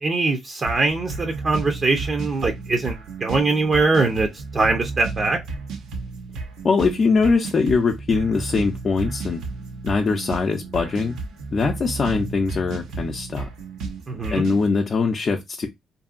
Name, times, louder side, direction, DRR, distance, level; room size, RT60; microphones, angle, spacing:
voice 1, 0.0-4.3 4.5-5.4 14.1-14.4, right 3 dB, 40° right, 0.6 m, -22 dB
sound 1, 0.7-14.7, right 4 dB, 85° right, 0.7 m, -33 dB
voice 2, 6.6-9.4 9.8-11.2 11.5-13.5 14.3-15.7, left 4 dB, 45° left, 0.5 m, -22 dB
2.8 x 2.6 x 2.4 m
cardioid pair, 90°, 0 cm